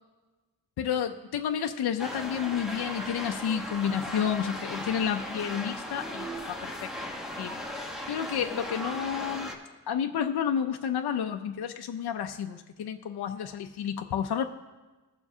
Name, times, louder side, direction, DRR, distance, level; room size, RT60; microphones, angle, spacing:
voice 1, 0.8-7.5 8.1-9.5 9.9-14.4, left 8 dB, 70° left, 5 dB, 0.5 m, -31 dB
sound 1, 2.0-9.5, equal, ahead, 1.0 m, -37 dB
20.0 x 7.1 x 2.7 m, 1.2 s
wide cardioid pair, 155°, 40 cm